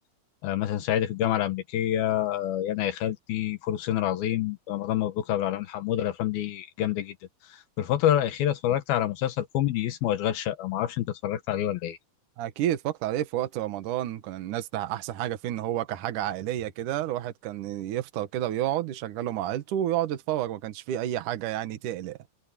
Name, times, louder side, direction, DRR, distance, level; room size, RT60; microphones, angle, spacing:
voice 1, 0.4-7.1 7.5-12.0, left 12 dB, 85° left, 3.1 m, -27 dB
voice 2, 12.4-22.2, right 12 dB, 65° right, 2.7 m, -30 dB
omnidirectional pair, 4.2 m